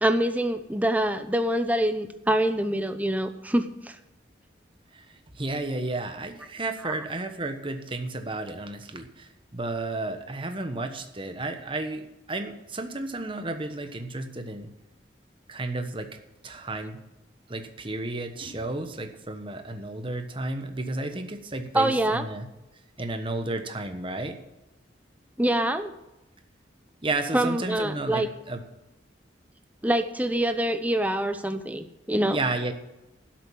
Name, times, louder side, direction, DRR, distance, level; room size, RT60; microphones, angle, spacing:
voice 1, 0.0-4.0 6.8-6.9 21.7-22.2 25.4-25.9 27.3-28.3 29.8-32.4, right 1 dB, 10° right, 8 dB, 0.8 m, -25 dB
voice 2, 4.9-14.7 15.5-16.1 16.4-17.0 17.5-22.5 23.0-24.4 27.0-28.6 32.3-32.7, right 2 dB, 25° right, 7 dB, 1.2 m, -32 dB
12.5 x 7.5 x 7.3 m, 0.99 s
head